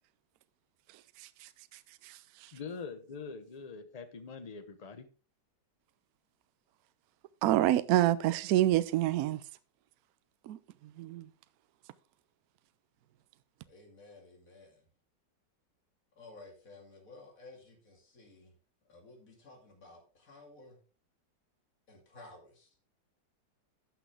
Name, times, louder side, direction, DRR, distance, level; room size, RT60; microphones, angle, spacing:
voice 1, 0.9-2.5 7.4-9.4 10.4-11.3, right 14 dB, 70° right, 1.0 m, -29 dB
voice 2, 2.5-5.1, left 5 dB, 30° left, 0.7 m, -43 dB
voice 3, 13.7-14.8 16.2-18.5 18.9-20.8 21.9-22.9, left 2 dB, 50° left, 2.8 m, -54 dB
12.0 x 6.1 x 3.4 m
omnidirectional pair, 1.9 m